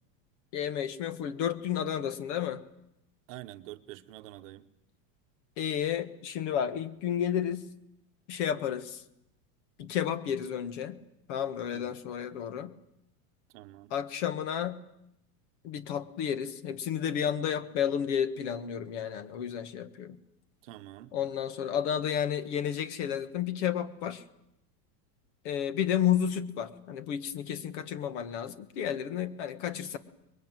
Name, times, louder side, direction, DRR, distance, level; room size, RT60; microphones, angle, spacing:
voice 1, 0.5-2.6 5.6-7.7 8.3-9.0 9.8-11.0 11.3-12.7 13.9-14.8 15.6-20.2 21.1-24.2 25.4-30.0, left 9 dB, 45° left, 1.6 m, -31 dB
voice 2, 3.3-4.7 11.7-11.9 13.5-13.9 20.6-21.1, right 15 dB, 50° right, 1.2 m, -46 dB
24.5 x 22.0 x 9.1 m
supercardioid pair, 180°, 48 cm